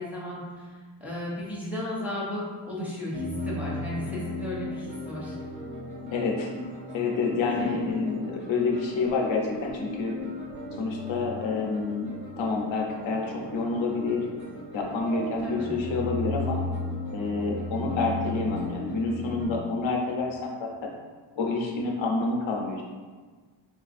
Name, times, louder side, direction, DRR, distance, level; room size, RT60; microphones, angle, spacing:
voice 1, 0.0-5.4 7.6-7.9 15.4-15.7, left 1 dB, 5° right, -7 dB, 0.5 m, -35 dB
sound 1, 3.1-19.6, left 2 dB, 40° right, 0.9 m, -36 dB
voice 2, 6.1-6.6 6.9-10.1 10.8-14.2 14.7-16.6 17.1-20.9 21.4-22.8, left 3 dB, 70° left, 0 dB, 0.6 m, -28 dB
3.9 x 2.4 x 2.5 m, 1.5 s
wide cardioid pair, 165°, 47 cm